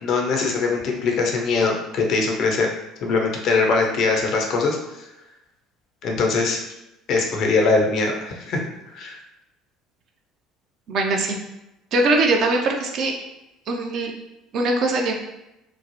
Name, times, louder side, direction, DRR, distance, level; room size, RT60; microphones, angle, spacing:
voice 1, 0.0-2.7 3.0-4.8 6.0-6.6 7.1-8.6 8.9-9.2, left 4 dB, 50° left, 1 dB, 0.5 m, -21 dB
voice 2, 10.9-11.4 11.9-13.1 13.7-14.1 14.5-15.1, right 2 dB, 50° right, 2 dB, 0.4 m, -21 dB
3.0 x 2.0 x 2.6 m, 0.92 s
figure-of-eight pair, 60°, 0 cm